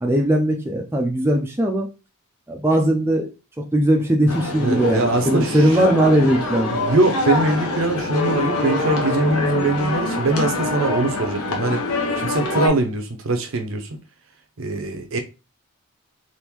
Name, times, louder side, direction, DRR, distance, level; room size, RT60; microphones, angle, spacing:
voice 1, 0.0-1.9 2.5-3.3 3.6-6.7, right 1 dB, 10° right, 0.4 m, -19 dB
sound 1, 4.3-12.7, left 2 dB, 85° left, 0.9 m, -25 dB
voice 2, 4.6-5.7 6.7-11.8 12.2-13.9 14.6-15.2, right 2 dB, 60° right, 0.6 m, -22 dB
3.6 x 2.5 x 2.9 m
head